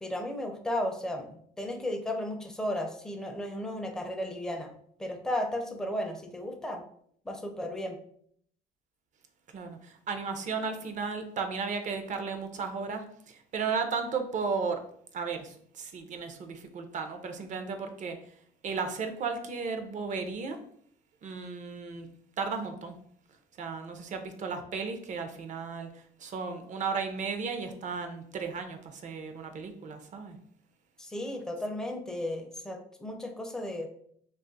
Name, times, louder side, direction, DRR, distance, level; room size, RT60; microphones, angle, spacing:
voice 1, 0.0-4.7 5.0-6.8 7.3-8.0 31.0-33.9, left 1 dB, 5° left, 3 dB, 0.4 m, -34 dB
voice 2, 9.5-14.8 15.1-18.3 18.6-20.6 21.2-22.1 22.4-23.0 23.6-30.4, right 5 dB, 45° right, 6 dB, 0.5 m, -35 dB
2.4 x 2.4 x 3.8 m, 0.64 s
cardioid pair, 110°, 17 cm